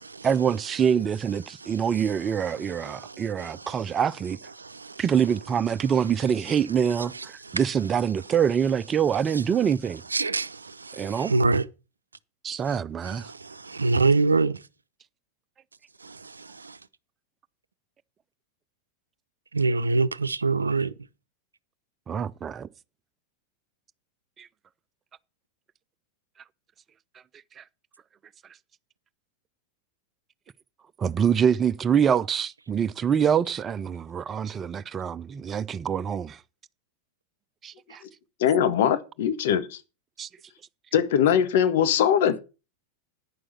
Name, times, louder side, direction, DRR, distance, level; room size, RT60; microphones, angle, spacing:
voice 1, 0.2-4.4 5.0-10.0 11.0-11.3 12.4-13.3 22.1-22.7 24.4-24.5 27.6-27.7 31.0-36.4 37.6-38.0 40.2-40.3, right 8 dB, 25° right, 0.5 m, -25 dB
voice 2, 10.1-10.5 11.2-11.6 13.7-14.5 19.5-20.9, right 3 dB, 80° right, 0.5 m, -22 dB
voice 3, 38.4-39.8 40.9-42.4, left 9 dB, 55° left, 1.2 m, -21 dB
9.9 x 6.3 x 7.2 m
figure-of-eight pair, 90°, 0 cm